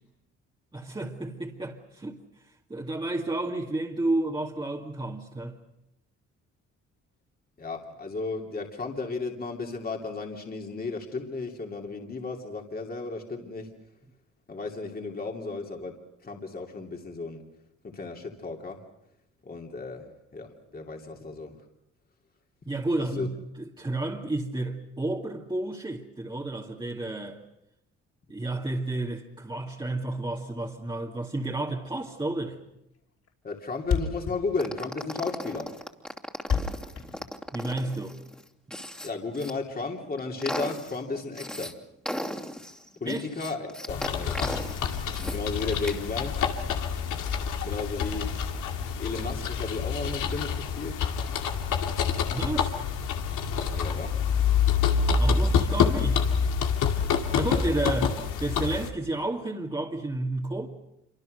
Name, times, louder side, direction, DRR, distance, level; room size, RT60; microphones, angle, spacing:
voice 1, 0.7-2.2 2.7-5.6 22.7-27.4 28.3-32.6 37.5-38.2 43.1-43.3 52.3-52.8 55.2-56.3 57.3-60.7, right 2 dB, 15° right, 2.3 m, -31 dB
voice 2, 7.6-13.7 14.5-17.4 17.8-18.8 19.4-21.6 23.2-23.3 33.4-35.7 39.0-41.7 43.0-44.6 45.3-46.5 47.6-48.4 49.0-51.0 53.7-54.2 54.9-55.0, left 3 dB, 30° left, 2.9 m, -34 dB
Thump thud, 32.5-32.7 32.9-33.0 33.3-33.4 33.6-33.7 33.8-37.9, left 6 dB, 60° left, 5.5 m, -30 dB
sound 1, 34.6-39.5 40.0-41.7 42.0-45.4 45.7-46.0, equal, 5° left, 2.8 m, -36 dB
sound 2, 43.9-58.9, left 6 dB, 85° left, 2.3 m, -27 dB
26.5 x 25.0 x 6.6 m
cardioid pair, 90°, 30 cm